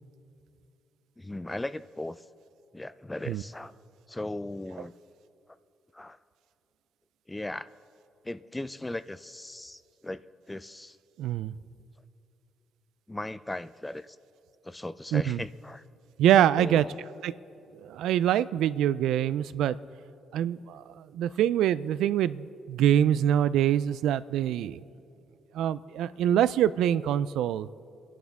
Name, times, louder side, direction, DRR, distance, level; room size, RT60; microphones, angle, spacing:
voice 1, 1.2-2.2 2.7-3.7 4.1-4.9 5.9-6.2 7.3-7.7 8.2-11.0 13.1-14.2 14.6-15.8 16.6-17.0 21.3-21.4, left 1 dB, 15° left, 16 dB, 0.4 m, -37 dB
voice 2, 11.2-11.5 15.1-15.4 16.2-16.8 17.2-17.3 17.8-19.8 20.3-24.8 25.5-27.7, right 11 dB, 85° right, 16 dB, 0.3 m, -25 dB
24.0 x 11.0 x 3.5 m, 2.7 s
cardioid pair, 90°, 0 cm